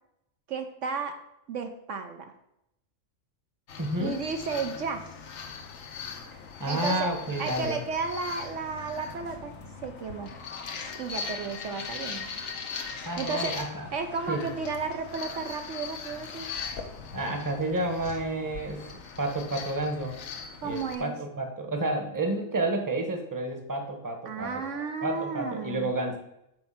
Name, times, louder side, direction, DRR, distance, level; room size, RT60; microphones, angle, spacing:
voice 1, 0.5-1.2 1.5-2.3 4.0-5.0 6.7-7.1 7.4-9.5 9.8-10.3 11.0-12.3 13.2-13.6 13.9-16.5 20.6-21.2 24.3-25.9, right 5 dB, 65° right, 6 dB, 1.0 m, -33 dB
sound 1, 3.7-21.0, left 5 dB, 75° left, 1.3 m, -40 dB
voice 2, 3.8-4.2 6.3-7.8 13.0-13.9 14.3-14.5 17.1-20.2 20.6-26.2, right 2 dB, 15° right, 5 dB, 1.0 m, -30 dB
7.8 x 4.5 x 5.7 m, 0.81 s
omnidirectional pair, 1.4 m